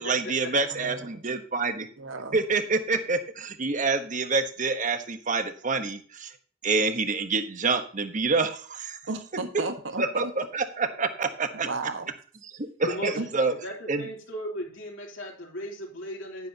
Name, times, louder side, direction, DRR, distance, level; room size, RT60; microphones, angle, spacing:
voice 1, 0.0-1.9 2.3-6.3 6.6-9.0 10.0-11.7 12.5-13.5 13.9-14.1, right 3 dB, 40° right, 1.2 m, -27 dB
voice 2, 0.7-1.2 2.0-2.4 9.1-10.3 11.5-12.1 13.2-13.3, right 3 dB, 80° right, 1.6 m, -34 dB
voice 3, 12.8-16.5, equal, 80° left, 3.6 m, -36 dB
10.5 x 10.0 x 2.9 m
head